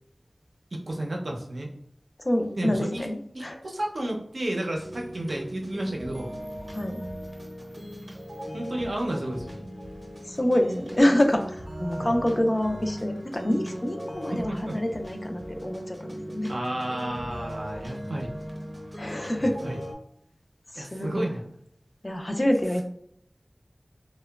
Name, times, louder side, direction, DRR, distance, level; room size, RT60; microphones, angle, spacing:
voice 1, 0.7-1.7 2.6-3.1 3.3-6.3 8.5-9.6 11.9-12.1 14.2-14.8 16.5-18.3 19.4-19.8 20.8-21.5, right 1 dB, 75° right, 0 dB, 0.5 m, -32 dB
voice 2, 2.2-3.6 6.7-7.0 10.2-16.5 19.0-19.6 20.7-21.3 22.0-22.8, left 1 dB, 35° left, 4 dB, 0.3 m, -26 dB
sound 1, 4.7-19.9, equal, 25° right, 0.7 m, -38 dB
2.8 x 2.1 x 2.2 m, 0.68 s
wide cardioid pair, 55°, 0 cm